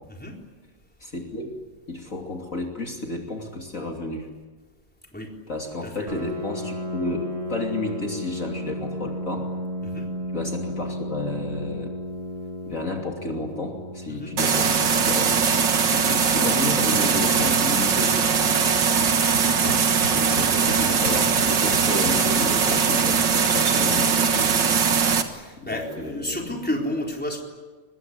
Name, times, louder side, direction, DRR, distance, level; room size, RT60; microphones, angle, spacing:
voice 1, 1.0-1.5 1.9-4.3 5.5-9.5 10.3-11.9 12.7-15.4 15.9-18.2 20.1-24.6 25.6-26.6, left 2 dB, 45° left, 1 dB, 3.2 m, -31 dB
Piano, 6.1-21.5, equal, 20° right, 1.7 m, -35 dB
sound 1, 14.4-25.2, right 6 dB, 90° right, 2.4 m, -21 dB
sound 2, 17.4-17.8 18.0-18.4 18.7-18.8 19.0-22.5, left 2 dB, 65° left, 7.9 m, -36 dB
voice 2, 25.3-27.4, left 1 dB, 5° left, 0 dB, 4.0 m, -31 dB
24.5 x 21.5 x 9.8 m, 1.3 s
omnidirectional pair, 1.9 m